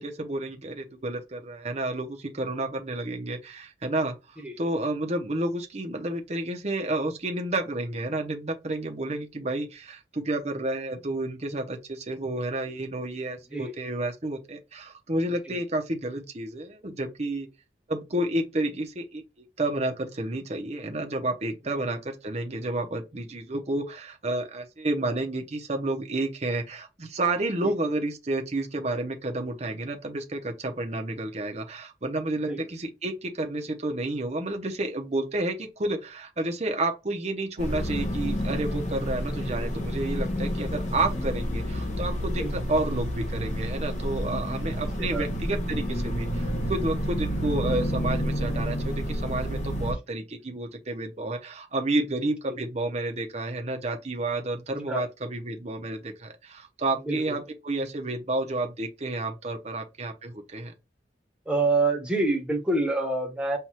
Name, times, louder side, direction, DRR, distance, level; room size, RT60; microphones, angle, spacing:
voice 1, 0.0-4.2 4.6-17.5 17.9-19.2 19.6-60.7, right 2 dB, 40° right, 0.9 m, -30 dB
sound 1, 37.6-49.9, equal, 40° left, 1.1 m, -29 dB
voice 2, 57.0-57.4 61.4-63.6, right 2 dB, 5° right, 1.1 m, -27 dB
5.7 x 2.6 x 3.1 m
head